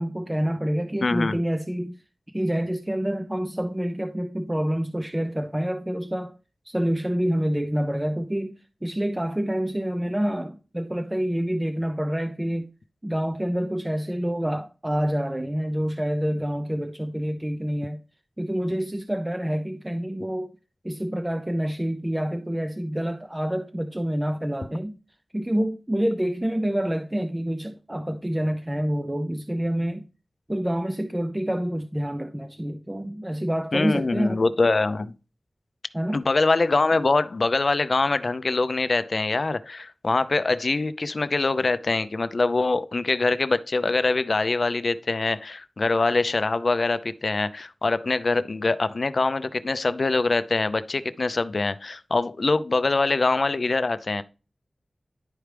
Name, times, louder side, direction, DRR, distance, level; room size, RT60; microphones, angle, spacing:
voice 1, 0.0-2.0 2.3-6.4 6.6-12.7 13.0-18.0 18.4-20.5 20.8-25.0 25.3-30.1 30.5-34.5 35.9-36.2, equal, 15° right, 0.6 m, -27 dB
voice 2, 1.0-1.4 33.7-35.1 36.1-54.2, left 3 dB, 55° left, 0.5 m, -24 dB
11.0 x 4.6 x 3.4 m
wide cardioid pair, 75°, 0 cm